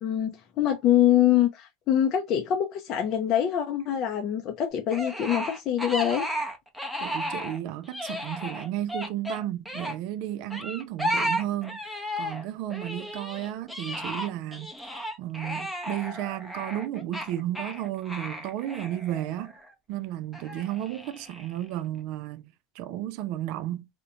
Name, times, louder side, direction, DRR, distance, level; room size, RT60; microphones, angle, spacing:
voice 1, 0.0-6.3, left 11 dB, 45° left, 0.4 m, -24 dB
sound 1, 4.9-7.6 7.8-10.0 10.5-12.4 12.7-19.7 20.3-21.6, equal, ahead, 0.6 m, -34 dB
voice 2, 7.0-19.5 19.9-23.9, right 13 dB, 60° right, 0.3 m, -33 dB
2.4 x 2.1 x 2.8 m
supercardioid pair, 110°, 0 cm